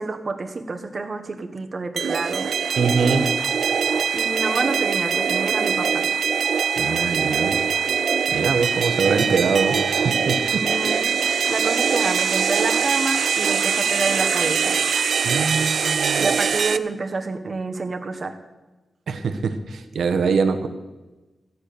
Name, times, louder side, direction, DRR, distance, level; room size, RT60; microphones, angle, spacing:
voice 1, 0.0-2.5 4.1-6.1 10.5-11.1 11.5-14.8 16.2-18.3, right 3 dB, 40° right, 6 dB, 1.4 m, -28 dB
sound 1, 2.0-16.8, right 6 dB, 70° right, 0.6 m, -22 dB
voice 2, 2.8-3.3 6.8-7.6 8.3-10.6 15.2-16.3 19.1-20.7, right 5 dB, 90° right, 8 dB, 1.2 m, -23 dB
15.0 x 9.7 x 6.9 m, 1.1 s
wide cardioid pair, 135°, 0 cm